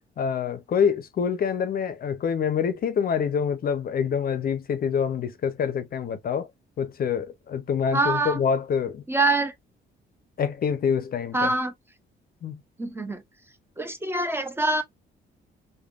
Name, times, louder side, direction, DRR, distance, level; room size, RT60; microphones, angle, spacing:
voice 1, 0.2-6.5 6.8-9.0 10.4-11.5 12.4-12.6, left 7 dB, 50° left, 0.5 m, -26 dB
voice 2, 7.9-8.4 9.1-9.5 11.3-11.7 12.8-13.2 13.8-14.8, right 2 dB, 10° right, 0.5 m, -24 dB
3.3 x 2.2 x 2.2 m
cardioid pair, 90°, 20 cm